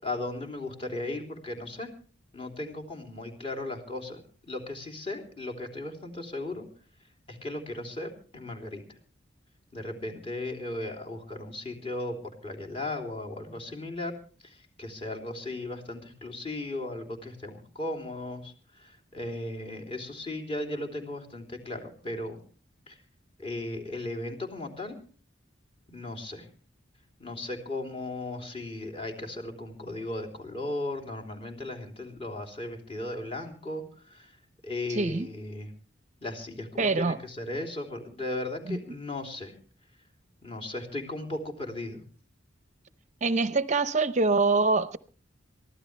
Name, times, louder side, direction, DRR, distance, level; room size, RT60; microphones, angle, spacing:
voice 1, 0.0-1.9 2.3-6.7 7.3-8.8 9.7-14.1 14.4-22.4 22.9-23.0 23.4-25.0 25.9-26.5 27.2-34.4 34.6-35.7 36.2-39.6 40.4-42.0, left 2 dB, 30° left, 3.2 m, -36 dB
voice 2, 34.9-35.3 36.8-37.2 38.7-38.8 43.2-45.0, right 3 dB, 40° right, 0.6 m, -25 dB
23.0 x 15.0 x 3.3 m
head